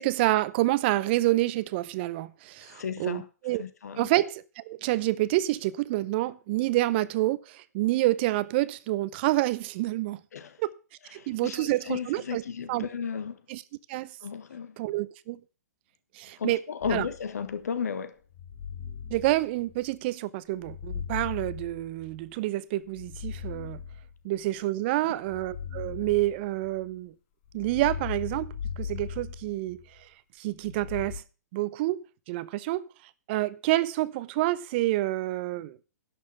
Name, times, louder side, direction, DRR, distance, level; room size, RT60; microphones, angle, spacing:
voice 1, 0.0-3.6 4.0-10.2 10.6-10.7 11.1-12.4 12.7-12.9 13.5-13.6 13.9-14.1 14.8-15.4 16.1-16.6 16.9-17.1 19.1-23.8 24.2-27.1 27.5-30.1 30.4-31.2 31.5-32.0 32.3-32.9 33.3-35.8, right 17 dB, 40° right, 0.7 m, -28 dB
voice 2, 2.6-3.3 3.5-4.1 10.3-10.6 11.1-13.4 14.2-14.8 16.4-18.2 25.0-25.1, left 6 dB, 70° left, 1.4 m, -34 dB
sound 1, 16.8-17.5 18.3-19.9 20.5-22.3 22.8-24.4 25.2-26.9 27.5-30.0 30.6-31.2, left 7 dB, 45° left, 1.3 m, -38 dB
11.0 x 6.3 x 7.2 m
figure-of-eight pair, 120°, 9 cm